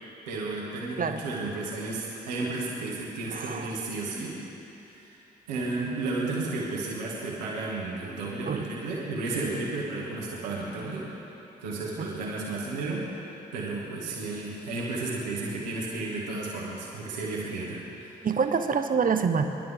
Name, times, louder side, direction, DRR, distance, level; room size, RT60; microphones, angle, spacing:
voice 1, 0.3-4.3 5.0-5.2 5.5-11.0 11.6-13.0 13.5-18.2, right 3 dB, 85° right, -4 dB, 2.1 m, -33 dB
voice 2, 3.3-3.9 8.4-8.7 12.0-12.1 18.2-19.4, right 6 dB, 40° right, 7 dB, 1.1 m, -26 dB
24.5 x 11.0 x 3.8 m, 2.8 s
hypercardioid pair, 40°, 21 cm